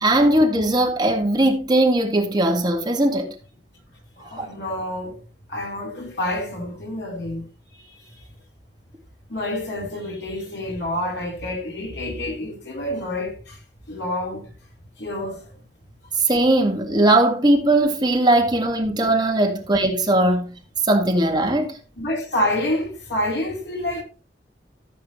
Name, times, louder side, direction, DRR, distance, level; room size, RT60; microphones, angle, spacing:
voice 1, 0.0-3.3 4.3-4.5 16.2-20.6 20.8-21.8, right 1 dB, 25° right, 1.9 m, -19 dB
voice 2, 4.2-5.2 5.5-7.5 9.3-13.6 13.9-14.5 15.0-15.4 22.0-24.0, left 1 dB, 80° left, 4.1 m, -28 dB
14.5 x 7.5 x 3.2 m
head